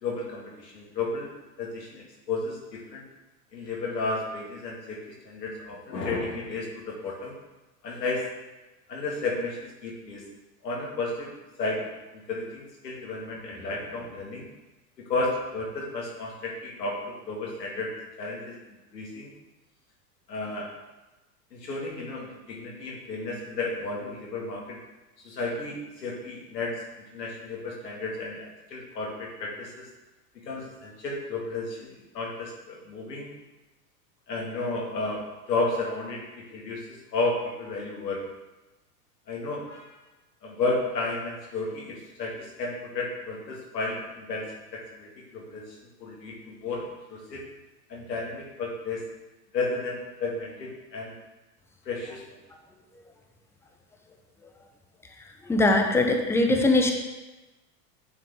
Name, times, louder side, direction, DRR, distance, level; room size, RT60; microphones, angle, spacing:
voice 1, 0.0-1.3 1.6-3.0 3.5-7.3 7.8-8.3 8.9-10.2 10.6-11.3 11.6-14.5 15.1-17.9 18.2-18.6 18.9-19.3 20.3-20.7 21.5-24.8 25.2-26.8 27.1-29.9 30.5-33.3 34.3-38.2 39.3-40.0 40.4-47.4 47.9-49.0 49.5-51.2 51.9-52.2, left 3 dB, 90° left, -2 dB, 1.9 m, -33 dB
voice 2, 55.4-56.9, left 2 dB, 5° left, 3 dB, 0.6 m, -21 dB
9.3 x 3.8 x 3.5 m, 1.1 s
hypercardioid pair, 105°, 48 cm